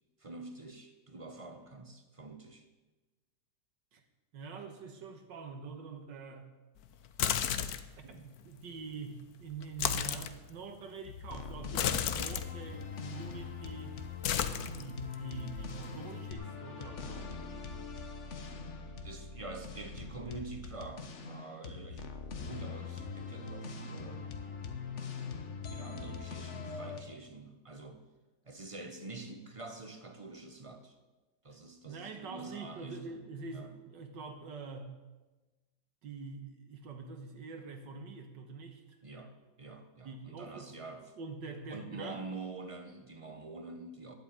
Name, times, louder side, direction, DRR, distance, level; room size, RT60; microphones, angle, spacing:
voice 1, 0.2-2.7 19.0-22.2 22.5-24.3 25.6-28.0 28.4-31.0 31.4-33.2 33.5-33.7 39.0-41.1 41.7-44.1, right 3 dB, 30° right, 6 dB, 0.6 m, -46 dB
voice 2, 4.3-6.5 8.0-14.0 14.7-17.3 31.8-34.9 36.0-39.0 40.0-40.8 41.2-42.2, right 4 dB, 75° right, 4 dB, 1.8 m, -45 dB
sound 1, 7.0-8.0 9.6-10.3 11.7-12.5 13.3-13.7 13.9-15.1 15.5-16.3, left 9 dB, 65° left, 1.1 m, -33 dB
sound 2, 11.0-27.0, left 5 dB, 45° left, 1.3 m, -42 dB
11.5 x 8.3 x 9.1 m, 1.2 s
omnidirectional pair, 2.0 m